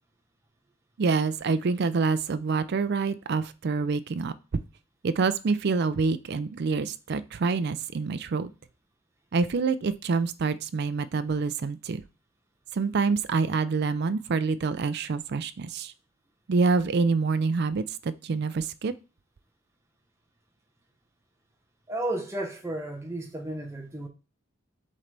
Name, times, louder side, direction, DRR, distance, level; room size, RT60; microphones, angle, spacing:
voice 1, 1.0-4.3 5.0-8.5 9.3-12.0 12.7-15.9 16.5-18.9, right 4 dB, 50° right, 0.4 m, -26 dB
voice 2, 21.9-24.1, right 1 dB, 15° right, 0.9 m, -33 dB
7.3 x 3.9 x 3.3 m
head